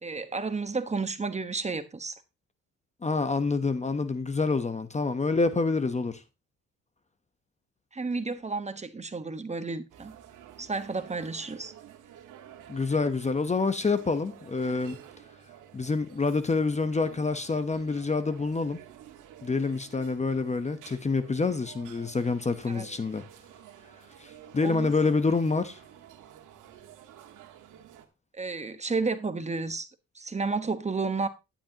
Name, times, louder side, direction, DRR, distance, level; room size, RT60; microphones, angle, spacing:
voice 1, 0.0-2.1 7.9-10.1 10.6-11.7 22.7-22.8 24.6-24.9 28.3-29.9 30.1-31.3, right 4 dB, 20° right, 1.2 m, -31 dB
voice 2, 3.0-6.2 12.7-15.0 15.7-18.8 19.4-23.2 24.2-25.8, left 3 dB, 25° left, 0.9 m, -27 dB
sound 1, 9.9-28.1, right 10 dB, 85° right, 1.7 m, -51 dB
11.5 x 10.0 x 2.9 m
cardioid pair, 90°, 30 cm